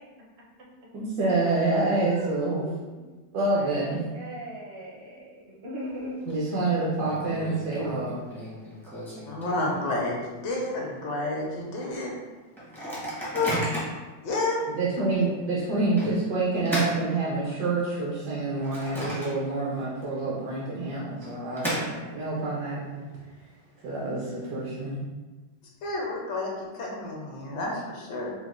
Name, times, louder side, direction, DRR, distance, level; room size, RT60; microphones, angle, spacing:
voice 1, 0.9-2.6 3.3-4.0 6.3-8.1 14.7-23.0 23.8-25.0, right 2 dB, 70° right, -5 dB, 1.2 m, -27 dB
voice 2, 1.9-3.0 3.5-6.2, right 1 dB, 50° right, -5 dB, 0.7 m, -38 dB
Microwave oven, 5.8-6.3 6.6-6.7 7.0-10.1 10.5-10.6 10.9-11.2 11.7-11.8 12.6-14.1 14.7-14.8 16.0-17.8 18.2-19.7 20.0-20.1 21.0-22.4, equal, 5° left, 0.4 m, -34 dB
voice 3, 9.3-12.1 13.3-13.5 14.2-14.6 25.8-28.3, left 2 dB, 85° left, -2 dB, 1.3 m, -30 dB
4.7 x 2.1 x 2.4 m, 1.2 s
omnidirectional pair, 2.0 m